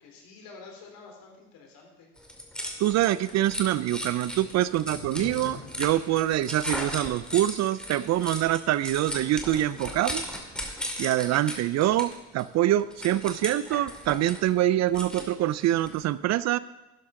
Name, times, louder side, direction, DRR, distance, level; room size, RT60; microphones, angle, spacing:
voice 1, 0.0-2.1, left 4 dB, 65° left, 1 dB, 3.5 m, -48 dB
sound 1, 2.2-16.0, equal, ahead, 2.3 m, -37 dB
voice 2, 2.8-10.2 11.0-16.6, right 13 dB, 45° right, 17 dB, 0.5 m, -25 dB
sound 2, 2.9-10.7, left 3 dB, 90° left, 2.9 m, -49 dB
12.0 x 11.0 x 3.8 m, 1.1 s
supercardioid pair, 80°, 37 cm